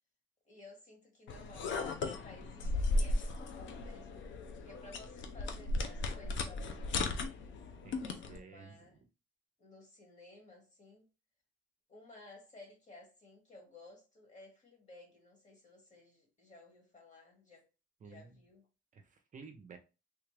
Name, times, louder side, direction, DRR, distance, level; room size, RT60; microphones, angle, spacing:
voice 1, 0.4-4.3 4.6-7.6 8.0-9.0 9.6-11.1 11.9-17.7 18.0-18.6, left 2 dB, 35° left, 1.9 m, -56 dB
sound 1, 1.3-8.4, left 2 dB, 70° left, 0.6 m, -36 dB
voice 2, 8.3-8.8 18.0-18.3 18.9-19.8, right 5 dB, 40° right, 0.5 m, -52 dB
3.3 x 2.4 x 3.2 m
cardioid pair, 90°, 20 cm